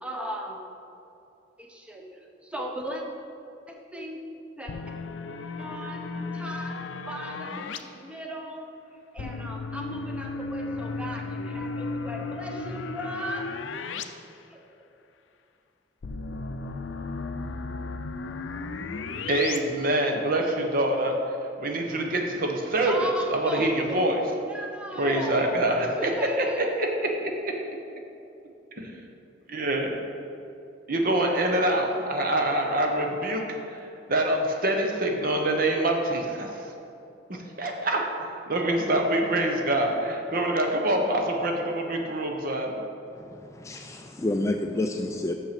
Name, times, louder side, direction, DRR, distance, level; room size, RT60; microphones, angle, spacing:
voice 1, 0.0-0.6 1.6-2.0 2.4-3.0 3.7-4.2 4.6-4.7 5.6-6.7 7.1-8.6 9.1-13.5 14.5-14.6 22.8-25.7 25.9-26.6, right 1 dB, 5° right, -1 dB, 0.8 m, -37 dB
sound 1, 4.7-7.8 9.2-14.0 14.4-14.5 16.0-19.6, left 3 dB, 85° left, 0.4 m, -34 dB
voice 2, 19.3-21.1 21.6-24.2 24.9-26.1 26.4-27.8 28.8-29.0 29.5-29.9 30.9-36.7 37.3-38.0 38.5-42.8, right 1 dB, 50° right, 2 dB, 0.9 m, -25 dB
voice 3, 43.2-45.3, left 2 dB, 15° left, 3 dB, 0.3 m, -29 dB
6.6 x 5.9 x 5.8 m, 2.7 s
head